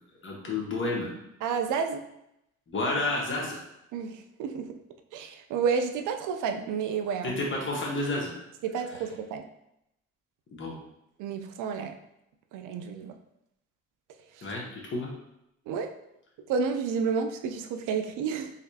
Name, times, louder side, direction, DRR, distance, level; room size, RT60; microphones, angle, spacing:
voice 1, 0.2-1.1 2.7-3.6 7.2-8.3 10.5-10.8 14.4-15.1, left 2 dB, 40° left, -2 dB, 1.3 m, -30 dB
voice 2, 1.4-2.0 3.9-4.7 5.1-7.4 8.6-9.4 11.2-11.9 12.5-13.1 14.4-14.5 15.7-15.9 16.5-18.5, right 6 dB, 85° right, 6 dB, 0.5 m, -30 dB
4.1 x 3.0 x 2.7 m, 0.82 s
cardioid pair, 90°, 30 cm